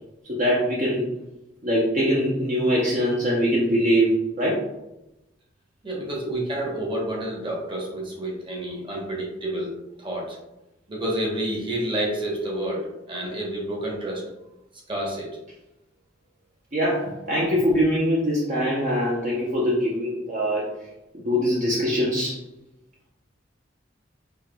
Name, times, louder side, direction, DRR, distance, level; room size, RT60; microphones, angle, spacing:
voice 1, 0.3-1.1 1.6-4.7 16.7-20.7 21.1-22.4, equal, 45° right, -5 dB, 0.6 m, -23 dB
voice 2, 5.8-9.7 10.0-10.4 10.9-14.2 14.9-15.4, right 1 dB, 30° right, -2 dB, 1.0 m, -29 dB
5.5 x 2.8 x 2.2 m, 0.92 s
head